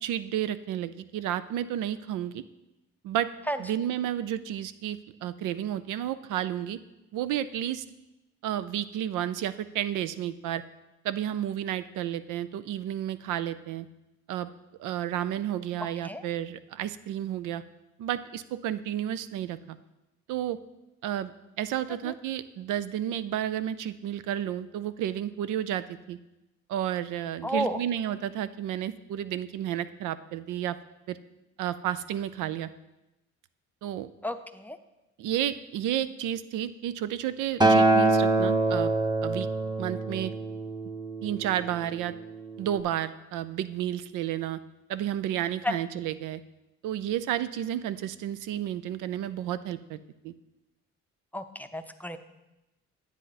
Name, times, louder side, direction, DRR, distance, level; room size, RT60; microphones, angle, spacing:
voice 1, 0.0-2.4 3.0-3.3 3.6-6.8 7.1-7.8 8.4-10.6 11.0-13.9 14.3-14.5 14.8-17.6 18.0-19.8 20.3-20.6 21.0-21.3 21.6-26.2 26.7-30.8 31.1-31.2 31.6-32.7 33.8-34.1 35.2-38.9 39.2-39.5 39.8-40.3 41.2-42.1 42.6-44.6 44.9-46.4 46.8-50.0 50.2-50.3, right 11 dB, 85° right, 14 dB, 0.5 m, -31 dB
voice 2, 27.4-27.8 34.2-34.8 45.6-45.8 51.3-52.2, equal, 5° left, 9 dB, 0.6 m, -31 dB
Acoustic guitar, 37.6-41.9 42.7-42.8, right 2 dB, 15° right, 0.9 m, -24 dB
9.8 x 8.1 x 4.1 m, 0.99 s
cardioid pair, 90°, 30 cm